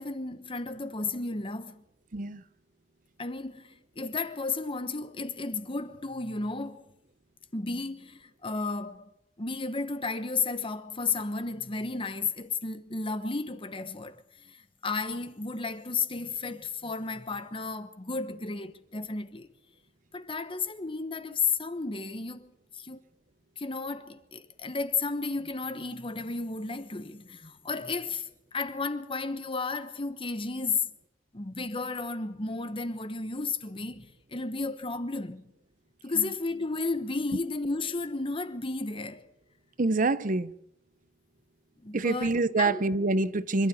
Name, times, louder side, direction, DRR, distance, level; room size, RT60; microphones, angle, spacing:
voice 1, 0.0-1.8 3.2-6.9 7.5-9.0 9.4-19.5 20.1-23.0 23.6-30.9 31.3-35.4 36.0-39.3 41.8-42.8, left 4 dB, 30° left, 1.1 m, -33 dB
voice 2, 2.1-2.4 36.2-36.3 39.8-40.5 41.9-43.7, right 3 dB, 45° right, 0.7 m, -26 dB
26.0 x 12.5 x 8.6 m
head